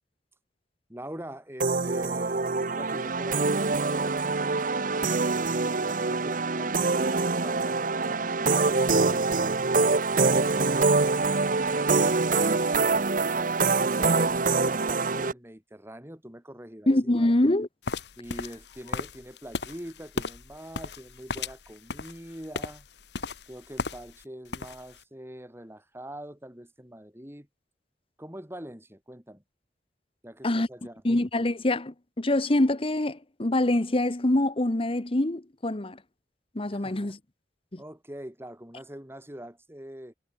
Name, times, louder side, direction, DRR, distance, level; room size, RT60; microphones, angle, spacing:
voice 1, 0.9-4.5 5.6-9.3 10.1-10.8 11.5-17.3 18.2-22.9 23.5-27.5 28.2-29.4 30.2-31.0 36.7-37.1 37.8-40.1, right 1 dB, 15° right, 4.3 m, -43 dB
sound 1, 1.6-15.3, right 3 dB, 50° right, 1.1 m, -25 dB
voice 2, 16.9-17.7 30.4-30.7 31.0-36.0 36.5-37.2 37.7-37.8, left 1 dB, 30° left, 1.1 m, -25 dB
sound 2, 17.8-24.2 24.5-25.0, left 3 dB, 70° left, 1.5 m, -36 dB
head